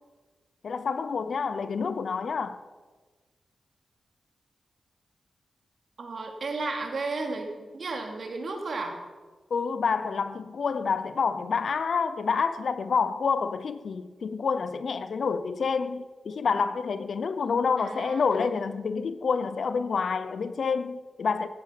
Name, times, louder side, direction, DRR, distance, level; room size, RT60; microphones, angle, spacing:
voice 1, 0.6-2.6 9.5-21.5, left 5 dB, 70° left, 0.7 m, -28 dB
voice 2, 6.0-9.0 17.8-18.5, right 3 dB, 65° right, 2.8 m, -34 dB
15.0 x 13.0 x 5.9 m
cardioid pair, 75°, 0 cm